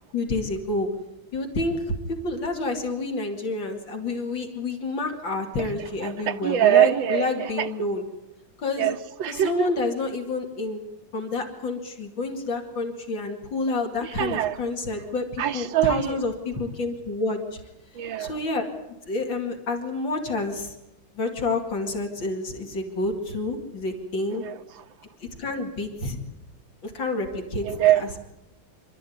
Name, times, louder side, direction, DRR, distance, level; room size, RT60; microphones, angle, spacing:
voice 1, 0.1-0.9 1.3-8.0 8.6-8.9 9.3-10.8 11.1-17.6 18.2-18.7 19.1-20.7 21.1-24.4 25.2-26.2 26.8-27.7 28.0-28.1, left 2 dB, 65° left, 3.1 m, -29 dB
voice 2, 6.0-7.7 8.8-9.7 14.0-14.6 15.4-16.2 17.9-18.4 24.3-24.8 27.6-28.2, right 12 dB, 70° right, 1.7 m, -23 dB
26.5 x 13.0 x 9.5 m
omnidirectional pair, 2.3 m